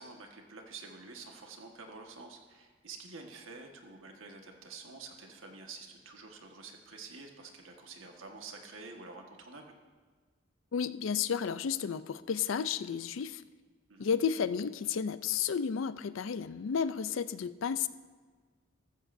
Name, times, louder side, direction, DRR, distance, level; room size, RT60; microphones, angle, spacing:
voice 1, 0.0-9.7 13.9-14.1, right 4 dB, 90° right, 2 dB, 1.5 m, -48 dB
voice 2, 10.7-13.4 14.0-17.9, left 7 dB, 85° left, 15 dB, 0.4 m, -32 dB
14.5 x 13.5 x 2.7 m, 1.4 s
head